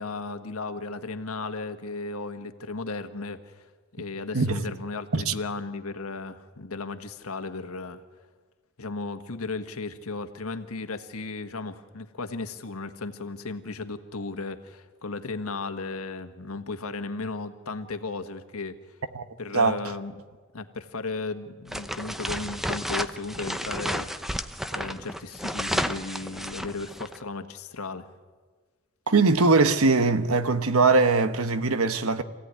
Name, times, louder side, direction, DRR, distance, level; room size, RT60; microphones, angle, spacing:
voice 1, 0.0-8.0 8.8-18.8 19.4-20.1 20.5-24.1 24.7-28.1, left 3 dB, 90° left, 1.5 m, -35 dB
sound 1, 21.7-27.2, equal, ahead, 0.7 m, -32 dB
voice 2, 29.1-32.2, right 3 dB, 80° right, 1.2 m, -21 dB
26.0 x 16.5 x 9.5 m
head